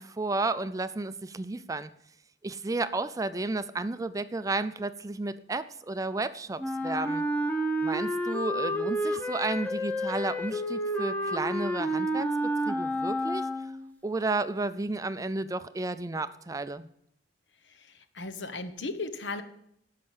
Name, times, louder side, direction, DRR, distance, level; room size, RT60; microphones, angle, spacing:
voice 1, 0.0-1.9 2.4-7.2 7.8-12.3 12.7-13.5 14.0-16.9, right 2 dB, 20° right, 13 dB, 0.4 m, -32 dB
Wind instrument woodwind instrument, 6.6-13.9, equal, 10° left, 0.8 m, -30 dB
voice 2, 18.1-19.4, left 3 dB, 85° left, 10 dB, 1.0 m, -35 dB
12.0 x 5.7 x 7.3 m, 0.72 s
head